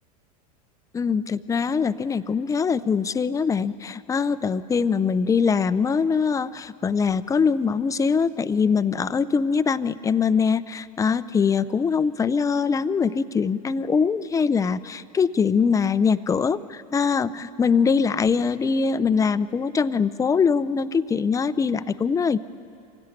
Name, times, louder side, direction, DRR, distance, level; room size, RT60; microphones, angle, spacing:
voice 1, 0.9-22.4, left 5 dB, 15° left, 14 dB, 0.6 m, -22 dB
24.0 x 16.5 x 9.8 m, 2.6 s
hypercardioid pair, 105°, 20 cm